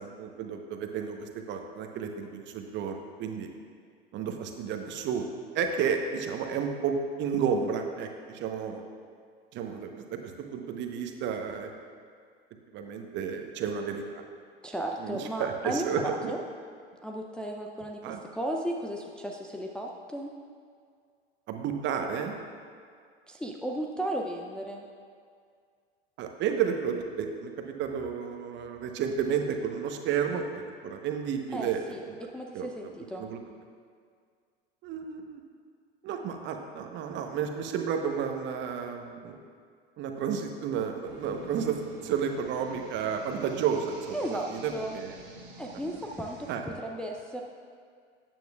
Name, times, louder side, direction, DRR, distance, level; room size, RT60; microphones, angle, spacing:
voice 1, 0.0-3.5 4.1-5.3 5.5-8.8 9.5-10.2 10.5-11.7 12.7-14.2 15.0-16.3 18.0-18.2 21.5-22.3 26.2-31.8 32.1-32.2 32.5-32.7 33.2-33.4 34.8-35.4 36.0-39.4 40.0-45.1 46.5-46.6, right 7 dB, 40° right, 4 dB, 0.9 m, -32 dB
voice 2, 14.6-16.4 17.0-20.3 23.3-24.8 31.5-32.0 32.3-33.3 44.1-45.0 45.6-46.5 46.8-47.4, right 1 dB, 5° left, 0 dB, 0.5 m, -35 dB
sound 1, 41.0-46.5, right 2 dB, 65° right, 1.6 m, -49 dB
13.0 x 9.0 x 2.4 m, 2.1 s
figure-of-eight pair, 80°, 29 cm